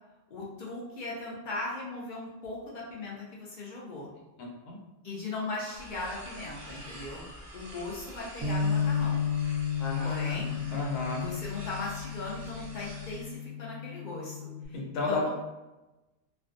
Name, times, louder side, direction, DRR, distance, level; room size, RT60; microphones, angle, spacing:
voice 1, 0.3-4.1 5.0-7.3 7.5-9.3 10.0-10.6 11.2-14.8 15.1-15.3, left 2 dB, 60° left, -4 dB, 0.5 m, -38 dB
sound 1, 5.7-13.3, right 1 dB, 50° right, 0.7 m, -47 dB
Bass guitar, 8.4-14.7, left 7 dB, 85° right, 0.4 m, -32 dB
voice 2, 9.8-11.3 14.7-15.3, left 2 dB, 80° left, -2 dB, 1.1 m, -33 dB
2.5 x 2.2 x 2.4 m, 1.0 s
omnidirectional pair, 1.3 m